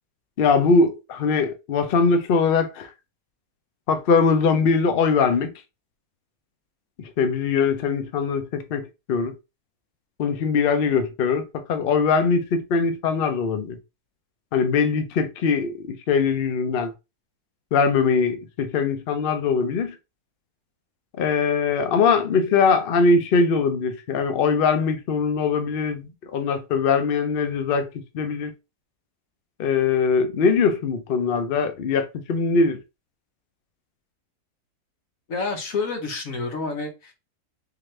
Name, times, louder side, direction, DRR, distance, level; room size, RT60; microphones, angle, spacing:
voice 1, 0.4-2.9 3.9-5.5 7.0-9.3 10.2-13.8 14.5-16.9 17.7-20.0 21.2-27.9 28.1-28.5 29.6-32.8, left 5 dB, 80° left, 0.5 m, -21 dB
voice 2, 35.3-37.1, left 4 dB, 60° left, 1.3 m, -29 dB
3.7 x 2.9 x 3.1 m
omnidirectional pair, 1.8 m